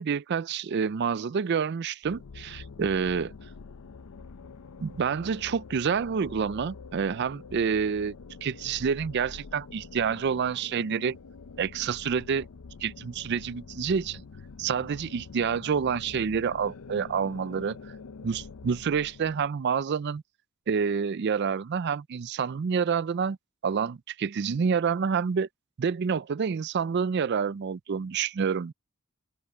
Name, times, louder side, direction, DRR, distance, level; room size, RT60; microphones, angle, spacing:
voice 1, 0.0-3.3 4.8-8.1 8.4-11.2 11.6-12.5 12.8-14.2 14.6-17.8 18.2-20.2 20.7-23.4 23.6-25.5 25.8-28.7, right 6 dB, 50° right, 0.4 m, -28 dB
sound 1, 2.0-19.5, left 4 dB, 85° left, 0.6 m, -46 dB
head